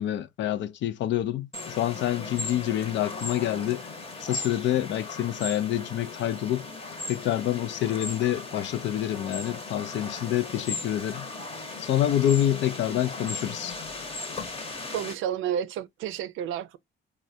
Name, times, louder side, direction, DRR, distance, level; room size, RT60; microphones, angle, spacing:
voice 1, 0.0-3.9 4.2-6.7 7.1-11.3 11.8-13.7, left 12 dB, 70° left, 0.4 m, -27 dB
sound 1, 1.5-15.2, left 3 dB, 30° left, 0.9 m, -37 dB
voice 2, 14.9-16.8, right 9 dB, 85° right, 0.5 m, -31 dB
3.2 x 2.2 x 2.6 m
cardioid pair, 90°, 20 cm